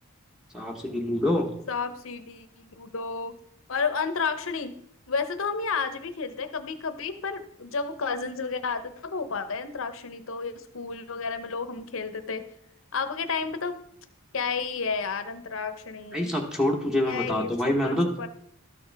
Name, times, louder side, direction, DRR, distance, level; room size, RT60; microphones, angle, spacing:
voice 1, 0.5-1.5 16.1-18.1, left 1 dB, 5° right, 2 dB, 1.1 m, -26 dB
voice 2, 1.7-3.3 3.7-4.8 5.1-12.4 12.9-13.7 14.3-16.3 17.1-18.3, left 5 dB, 65° left, 9 dB, 0.8 m, -31 dB
12.5 x 6.7 x 3.5 m, 0.69 s
head